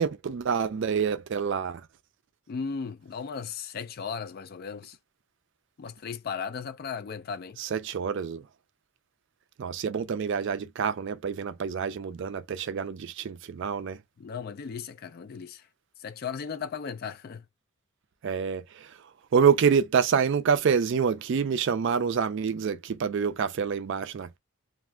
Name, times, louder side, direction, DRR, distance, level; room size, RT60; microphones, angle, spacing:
voice 1, 0.0-1.8 7.6-8.5 9.6-14.0 18.2-19.0 19.3-24.4, right 6 dB, 55° right, 0.3 m, -27 dB
voice 2, 2.5-5.0 5.8-7.6 14.2-15.7 16.0-17.4, left 6 dB, 40° left, 0.3 m, -36 dB
2.5 x 2.3 x 3.1 m
head